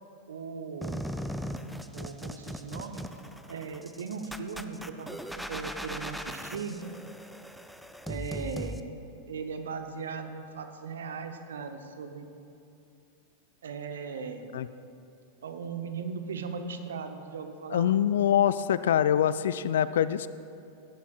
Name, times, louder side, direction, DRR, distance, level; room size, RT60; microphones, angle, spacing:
voice 1, 0.3-1.1 1.9-3.1 3.5-6.8 8.0-8.8 9.3-12.3 13.6-14.4 15.4-17.9, right 5 dB, 65° right, 7 dB, 0.8 m, -38 dB
sound 1, 0.8-8.8, equal, ahead, 0.5 m, -39 dB
voice 2, 17.7-20.3, left 10 dB, 60° left, 16 dB, 0.3 m, -24 dB
16.5 x 11.5 x 2.4 m, 2.7 s
figure-of-eight pair, 90°, 0 cm